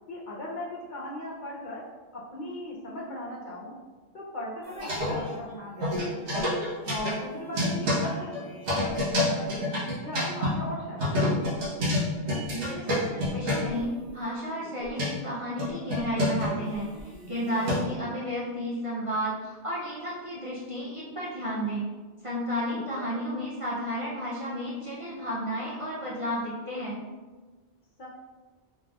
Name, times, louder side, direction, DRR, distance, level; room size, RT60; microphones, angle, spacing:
voice 1, 0.1-1.9 2.1-3.8 4.1-6.5 6.8-9.7 10.0-11.5 17.5-17.7 22.7-23.1 28.0-28.1, left 1 dB, 50° left, -4 dB, 0.7 m, -38 dB
sound 1, 4.6-5.5 5.8-10.5 11.0-13.8 14.6-15.1 15.6-18.0, left 1 dB, 85° right, 1.4 m, -28 dB
voice 2, 12.5-21.9 22.2-27.0, equal, 40° right, -7 dB, 0.5 m, -32 dB
4.1 x 3.3 x 2.3 m, 1.3 s
omnidirectional pair, 1.2 m